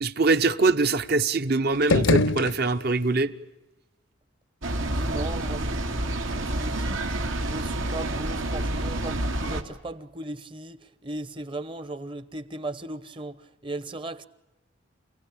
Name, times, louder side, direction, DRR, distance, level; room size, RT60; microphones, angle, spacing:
voice 1, 0.0-3.3, right 3 dB, 50° right, 1.0 m, -23 dB
sound 1, 1.7-3.2, left 2 dB, 70° left, 0.8 m, -24 dB
sound 2, 4.6-9.6, right 1 dB, 80° right, 2.3 m, -28 dB
voice 2, 4.8-5.8 6.3-7.1 7.5-14.3, right 1 dB, 25° right, 0.9 m, -37 dB
27.5 x 17.5 x 8.9 m
head